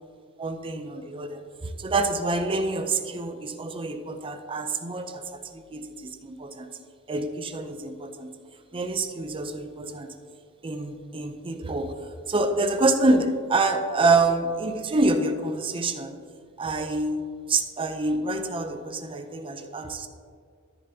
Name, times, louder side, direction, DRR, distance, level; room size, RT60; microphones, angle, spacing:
voice 1, 0.4-6.8 7.1-8.3 8.7-10.1 10.6-11.9 12.3-16.2 16.6-17.2 17.5-20.1, right 2 dB, 25° right, 7 dB, 0.5 m, -27 dB
10.0 x 10.0 x 2.8 m, 2.2 s
head